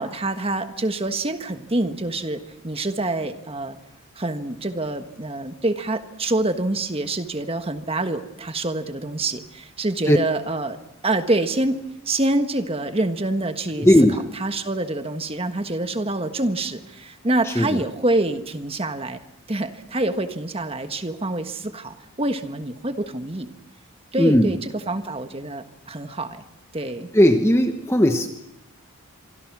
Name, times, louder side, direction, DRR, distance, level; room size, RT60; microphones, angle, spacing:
voice 1, 0.0-3.8 4.1-10.8 11.0-11.8 12.0-13.9 14.4-19.2 19.5-23.5 24.1-26.4 26.7-27.1, right 2 dB, 25° right, 8 dB, 1.4 m, -26 dB
voice 2, 13.8-14.2 17.4-17.8 24.2-24.5 27.1-28.3, left 1 dB, 10° left, 6 dB, 1.1 m, -17 dB
26.0 x 25.0 x 6.1 m, 0.88 s
head